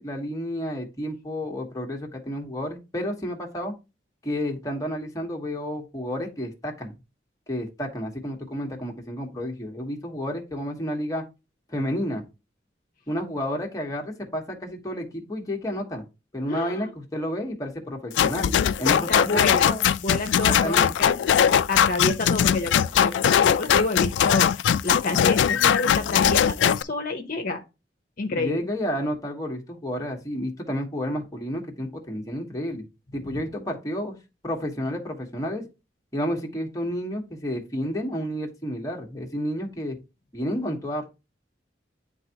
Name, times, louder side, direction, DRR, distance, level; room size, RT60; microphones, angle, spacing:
voice 1, 0.0-3.7 4.2-6.9 7.5-11.2 11.7-12.3 13.1-16.0 16.3-18.5 18.8-19.9 20.5-21.1 28.3-32.9 33.1-34.2 34.4-35.7 36.1-40.0 40.3-41.1, equal, 20° left, 0 dB, 1.1 m, -31 dB
voice 2, 16.5-16.9 18.9-21.2 21.5-24.5 24.8-27.6 28.2-28.7, left 3 dB, 50° left, 3 dB, 0.8 m, -28 dB
sound 1, 18.2-26.8, left 9 dB, 80° left, 0.3 m, -20 dB
9.7 x 3.5 x 2.8 m, 0.27 s
head